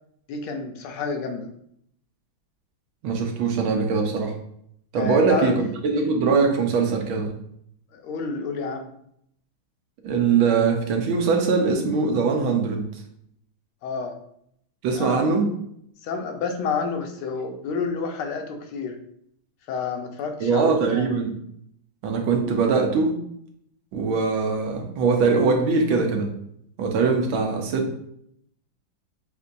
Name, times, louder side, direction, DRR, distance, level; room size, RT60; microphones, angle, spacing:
voice 1, 0.3-1.5 4.9-5.5 7.9-8.9 13.8-14.1 14.9-15.2 16.0-19.0 19.7-21.1, left 5 dB, 90° left, 4 dB, 1.6 m, -29 dB
voice 2, 3.0-4.3 4.9-7.3 10.0-12.9 14.8-15.5 20.4-21.3 22.0-23.1 23.9-26.3 26.8-28.0, right 4 dB, 75° right, 2 dB, 1.5 m, -22 dB
6.7 x 2.6 x 2.5 m, 0.70 s
omnidirectional pair, 2.3 m